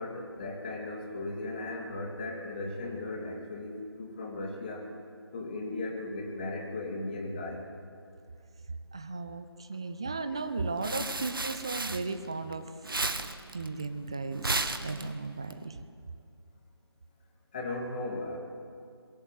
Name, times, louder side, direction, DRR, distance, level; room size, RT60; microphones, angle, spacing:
voice 1, 0.0-4.9 5.3-7.7 17.5-18.4, left 2 dB, 20° left, 0 dB, 2.8 m, -37 dB
voice 2, 8.9-12.7 13.5-15.8, right 3 dB, 10° right, 10 dB, 0.5 m, -35 dB
sound 1, 10.5-12.5 12.8-15.5, right 2 dB, 55° right, 1.5 m, -34 dB
27.5 x 22.0 x 7.6 m, 2.4 s
figure-of-eight pair, 160°, 14 cm